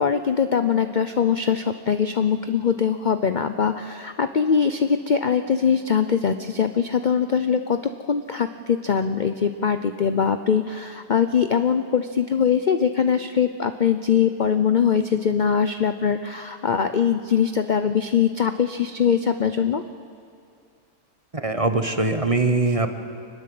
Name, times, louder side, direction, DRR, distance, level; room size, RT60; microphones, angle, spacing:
voice 1, 0.0-7.8 8.1-19.8, left 7 dB, 50° left, 9 dB, 0.5 m, -22 dB
voice 2, 21.3-22.9, right 3 dB, 25° right, 7 dB, 1.0 m, -22 dB
25.0 x 20.5 x 7.7 m, 2.4 s
omnidirectional pair, 1.6 m